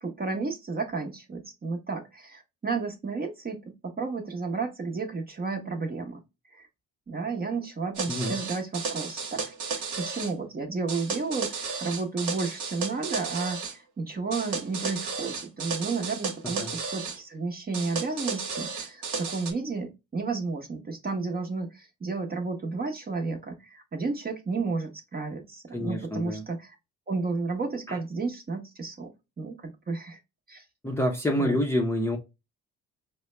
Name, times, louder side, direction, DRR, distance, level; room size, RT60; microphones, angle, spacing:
voice 1, 0.0-6.2 6.5-6.7 7.1-9.5 10.0-26.8 27.1-30.2 30.5-30.6 31.4-31.6, right 4 dB, 30° right, 0.9 m, -32 dB
sound 1, 7.9-10.3 10.9-13.7 14.3-17.2 17.7-19.5, right 5 dB, 75° right, 1.1 m, -33 dB
voice 2, 25.7-26.4 27.9-28.0 30.8-32.2, left 1 dB, 10° left, 0.6 m, -27 dB
4.5 x 2.2 x 3.1 m
cardioid pair, 90°, 30 cm